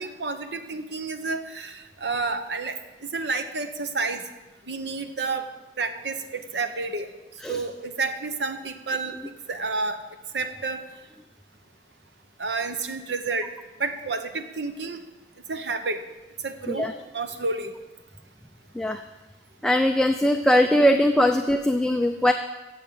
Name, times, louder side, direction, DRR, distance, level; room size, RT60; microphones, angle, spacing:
voice 1, 0.0-2.8 3.0-4.2 4.7-5.5 5.8-7.1 7.5-9.1 9.5-10.0 10.3-10.8 12.4-13.5 13.8-15.0 15.5-16.0 16.4-17.7, right 3 dB, 85° right, 8 dB, 1.2 m, -30 dB
voice 2, 19.6-22.3, equal, 5° left, 5 dB, 0.5 m, -20 dB
15.5 x 8.0 x 7.1 m, 1.1 s
head